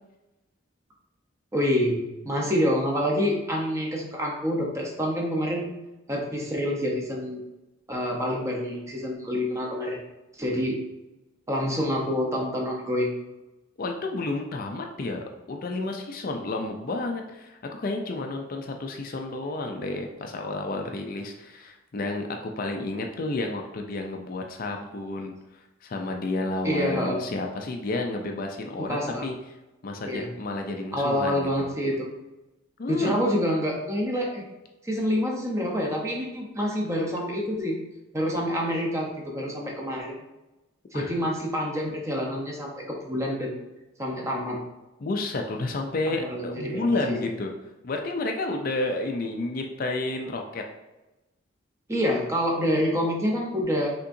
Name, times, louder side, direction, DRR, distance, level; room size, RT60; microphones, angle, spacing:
voice 1, 1.5-2.0 2.2-5.7 6.1-7.4 7.9-10.0 10.4-10.7 11.5-13.2 26.6-27.2 28.8-29.3 30.0-30.3 30.9-32.1 32.9-34.4 34.8-37.8 38.1-40.1 40.9-43.5 44.0-44.6 46.1-47.3 51.9-53.9, equal, 15° right, -1 dB, 0.7 m, -27 dB
voice 2, 13.8-29.3 29.8-31.7 32.8-33.1 40.9-41.1 45.0-47.5 47.8-50.6, left 2 dB, 40° left, 3 dB, 0.4 m, -31 dB
5.5 x 3.6 x 2.6 m, 1.0 s
head